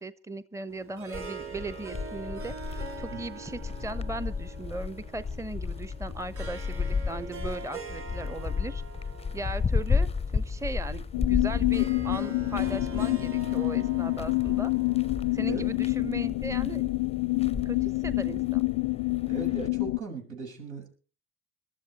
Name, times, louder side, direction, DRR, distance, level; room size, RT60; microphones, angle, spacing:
voice 1, 0.0-8.8 9.3-14.7 15.3-16.8 17.6-18.6, right 2 dB, 10° right, 15 dB, 1.0 m, -38 dB
Harp, 0.7-16.0, right 4 dB, 45° right, 4.4 m, -44 dB
sound 1, 1.1-19.7, left 5 dB, 20° left, 0.7 m, -34 dB
sound 2, 11.1-20.0, left 25 dB, 75° left, 0.6 m, -27 dB
voice 2, 19.3-20.9, right 3 dB, 75° right, 0 dB, 7.3 m, -38 dB
21.5 x 12.5 x 4.3 m, 0.36 s
hypercardioid pair, 60°, 30 cm